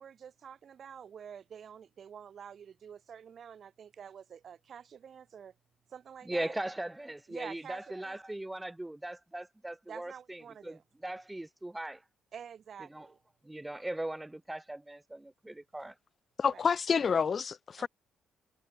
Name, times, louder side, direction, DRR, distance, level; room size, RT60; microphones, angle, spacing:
voice 1, 0.0-5.5 5.9-6.5 7.3-8.2 9.9-10.8 12.3-13.2 16.4-16.6 17.8-17.9, right 8 dB, 55° right, 5.1 m, -48 dB
voice 2, 6.2-12.0 12.9-13.1 13.4-15.9, right 1 dB, 10° right, 1.2 m, -39 dB
voice 3, 16.4-17.9, left 6 dB, 45° left, 0.5 m, -28 dB
cardioid pair, 90°, 0 cm